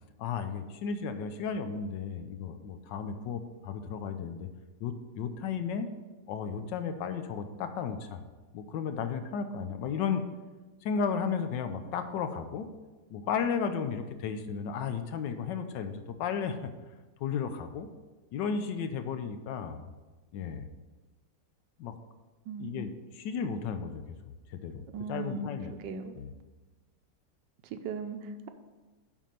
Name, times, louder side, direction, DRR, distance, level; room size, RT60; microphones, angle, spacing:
voice 1, 0.2-4.5 4.8-5.9 6.3-8.2 8.5-10.2 10.8-12.7 13.1-16.7 17.2-17.9 18.3-19.8 20.3-20.7 21.8-21.9 22.6-24.0 24.5-24.8 25.1-25.7 26.2-26.3, left 6 dB, 85° left, 9 dB, 1.4 m, -34 dB
voice 2, 22.5-22.9 24.9-26.2 27.6-28.5, right 4 dB, 85° right, 7 dB, 1.4 m, -38 dB
7.5 x 5.4 x 6.8 m, 1.2 s
omnidirectional pair, 1.9 m